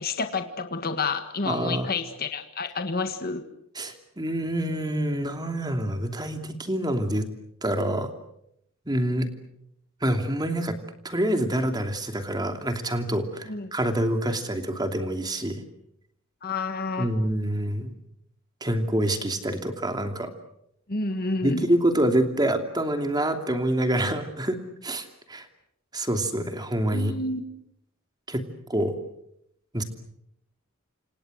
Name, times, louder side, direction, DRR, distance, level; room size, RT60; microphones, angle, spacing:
voice 1, 0.0-3.4 13.5-13.7 16.4-17.1 20.9-21.7 26.9-27.4, left 3 dB, 45° left, 8 dB, 1.7 m, -29 dB
voice 2, 1.5-1.9 3.7-7.3 7.6-8.1 8.9-9.3 10.0-10.8 11.0-15.6 17.0-17.9 18.6-20.3 21.4-25.5 25.9-27.2 28.3-28.9 29.7-29.8, right 1 dB, 20° right, 6 dB, 2.8 m, -26 dB
29.5 x 26.5 x 6.5 m, 0.75 s
head